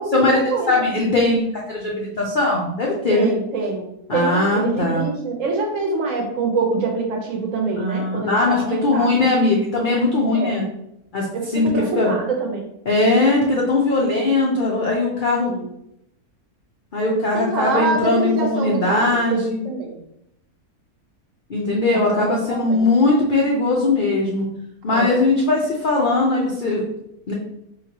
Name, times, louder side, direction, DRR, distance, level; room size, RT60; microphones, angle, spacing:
voice 1, 0.0-0.7 3.1-3.9 4.1-9.1 10.3-10.6 11.3-12.7 15.5-15.7 17.3-20.0 21.9-22.9 24.9-25.2, right 4 dB, 65° right, 1 dB, 1.0 m, -25 dB
voice 2, 0.7-3.3 4.1-5.0 7.8-10.6 11.1-11.3 11.5-12.2 12.9-15.5 16.9-19.6 21.5-24.4 24.8-26.8 27.3-27.4, left 2 dB, 75° left, -2 dB, 0.4 m, -20 dB
4.3 x 2.9 x 2.8 m, 0.79 s
omnidirectional pair, 1.6 m